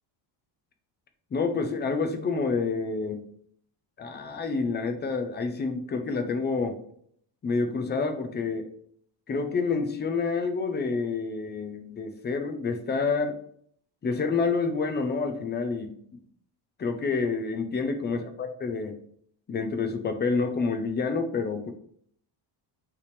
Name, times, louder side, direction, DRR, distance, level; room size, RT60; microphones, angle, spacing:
voice 1, 1.3-3.2 4.0-6.8 7.4-8.7 9.3-13.4 14.0-15.9 16.8-18.9 19.5-21.7, left 4 dB, 20° left, 7 dB, 0.5 m, -28 dB
8.3 x 3.3 x 3.4 m, 0.64 s
cardioid pair, 165°, 49 cm